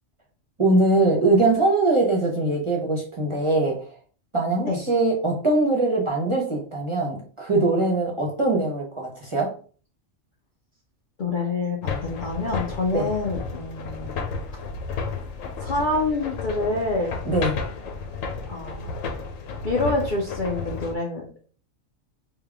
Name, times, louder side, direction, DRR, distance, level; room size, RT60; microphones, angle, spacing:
voice 1, 0.6-3.8 4.3-9.5 12.9-13.1 17.3-17.6, right 2 dB, 30° right, -1 dB, 0.6 m, -22 dB
voice 2, 11.2-14.3 15.6-17.2 18.5-18.9 19.6-21.5, left 2 dB, 55° left, -1 dB, 0.6 m, -27 dB
sound 1, 11.8-20.9, left 4 dB, 85° left, 1.1 m, -32 dB
3.6 x 2.2 x 3.4 m, 0.41 s
omnidirectional pair, 1.3 m